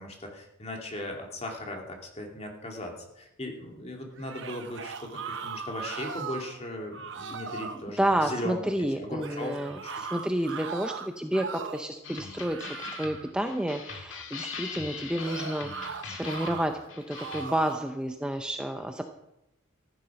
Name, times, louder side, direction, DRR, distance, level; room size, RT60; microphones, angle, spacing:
voice 1, 0.0-8.6 9.0-10.0, left 1 dB, 30° left, 2 dB, 2.5 m, -38 dB
sound 1, 4.2-6.6 6.9-7.8 9.2-11.9 12.3-13.3 15.2-16.7 17.1-17.9, right 5 dB, 60° right, 1.1 m, -39 dB
voice 2, 8.0-16.8 17.1-19.0, right 1 dB, 5° right, 5 dB, 0.6 m, -30 dB
sound 2, 12.0-17.5, left 5 dB, 65° left, 2.1 m, -41 dB
14.5 x 11.0 x 5.9 m, 0.90 s
head